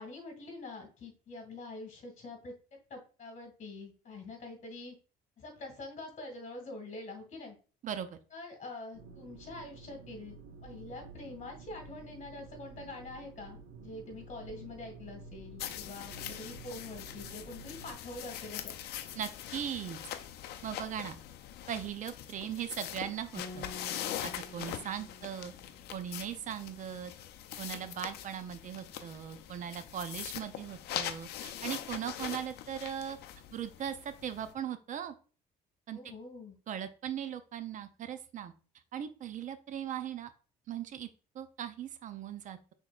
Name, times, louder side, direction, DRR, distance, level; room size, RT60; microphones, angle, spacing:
voice 1, 0.0-2.5 2.9-5.0 5.4-7.6 8.3-10.4 10.6-18.7 35.9-36.5, left 2 dB, 45° left, 5 dB, 1.8 m, -45 dB
voice 2, 7.8-8.2 19.2-20.0 20.6-21.2 21.7-23.7 24.2-25.5 25.9-27.1 27.6-33.2 33.5-35.1 35.9-36.0 36.7-38.5 38.9-40.3 40.7-41.1 41.3-42.7, right 9 dB, 50° right, 11 dB, 0.5 m, -39 dB
sound 1, 8.9-17.9, right 4 dB, 90° right, 1.1 m, -51 dB
sound 2, 15.6-34.5, left 11 dB, 75° left, 0.5 m, -42 dB
sound 3, 23.4-26.5, left 2 dB, 20° left, 0.9 m, -49 dB
5.9 x 3.5 x 2.3 m, 0.37 s
cardioid pair, 110°, 17 cm